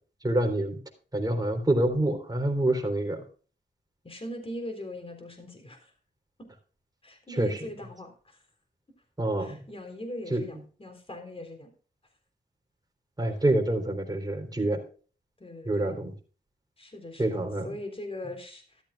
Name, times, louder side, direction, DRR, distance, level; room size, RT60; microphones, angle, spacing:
voice 1, 0.2-0.8 1.1-3.2 7.4-7.6 9.2-9.6 10.3-10.4 13.2-14.8 15.7-16.1 17.2-17.7, right 1 dB, 20° right, 3 dB, 3.8 m, -26 dB
voice 2, 4.0-5.9 7.0-8.4 9.4-11.7 13.3-13.4 15.4-16.0 16.8-18.8, left 1 dB, 30° left, 5 dB, 3.7 m, -41 dB
14.0 x 12.5 x 2.4 m, 0.39 s
wide cardioid pair, 75°, 18 cm